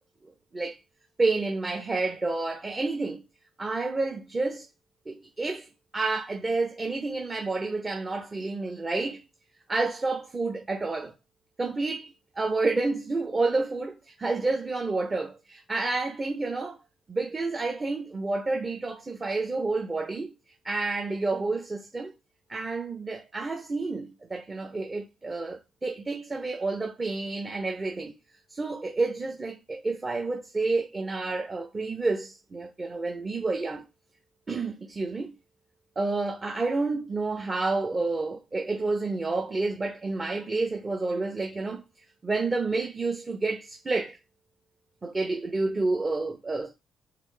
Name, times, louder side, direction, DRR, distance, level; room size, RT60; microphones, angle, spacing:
voice 1, 1.2-3.2 3.6-4.7 5.1-5.7 5.9-9.2 9.7-11.1 11.6-12.1 12.4-16.8 17.1-20.3 20.6-22.1 22.5-28.1 28.5-33.8 34.5-35.3 36.0-41.8 42.2-44.2 45.0-46.7, right 3 dB, 25° right, 0.8 m, -29 dB
4.0 x 3.2 x 3.3 m
cardioid pair, 90°, 0 cm